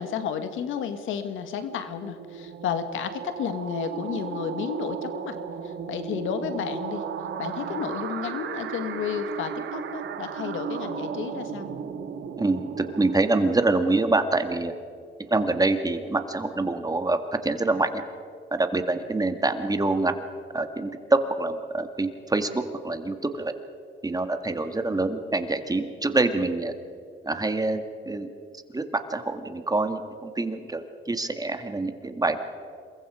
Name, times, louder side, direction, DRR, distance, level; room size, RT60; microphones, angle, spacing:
voice 1, 0.0-5.4 5.6-7.0 7.4-11.7, left 7 dB, 85° left, 9 dB, 1.8 m, -32 dB
sound 1, 1.4-14.0, right 7 dB, 70° right, 2.0 m, -35 dB
voice 2, 12.4-14.7 15.2-18.0 18.5-20.2 20.5-23.5 24.0-26.7 27.2-28.3 28.7-32.4, right 2 dB, 20° right, 8 dB, 1.9 m, -26 dB
27.5 x 22.5 x 5.0 m, 2.4 s
cardioid pair, 90°, 20 cm